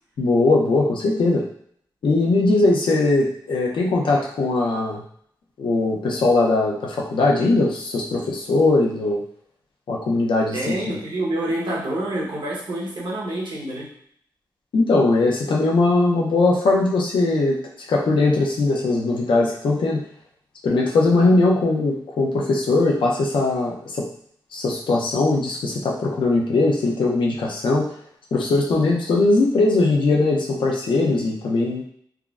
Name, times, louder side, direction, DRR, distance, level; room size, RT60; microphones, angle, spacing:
voice 1, 0.2-1.4 2.0-5.0 5.6-9.2 9.9-11.0 14.7-17.6 17.9-20.0 20.6-24.1 24.5-27.9 28.3-31.8, left 2 dB, 90° left, -2 dB, 0.5 m, -20 dB
voice 2, 10.5-13.9, right 1 dB, 75° right, -5 dB, 0.9 m, -27 dB
3.5 x 2.0 x 2.3 m, 0.64 s
wide cardioid pair, 75°, 8 cm